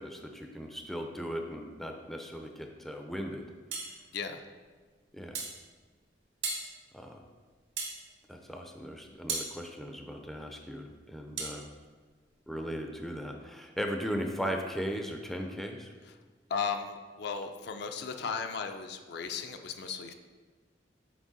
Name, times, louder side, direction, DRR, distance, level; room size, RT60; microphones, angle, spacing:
voice 1, 0.0-3.4 5.1-5.4 6.9-7.2 8.3-11.7 12.5-15.9, equal, ahead, 3 dB, 0.4 m, -37 dB
sound 1, 3.7-3.9 5.3-5.6 6.4-6.7 7.8-8.0 9.3-9.5 11.4-11.6, right 4 dB, 75° right, 1.2 m, -34 dB
voice 2, 16.5-20.1, left 5 dB, 65° left, 6 dB, 0.5 m, -36 dB
6.2 x 4.2 x 4.0 m, 1.4 s
head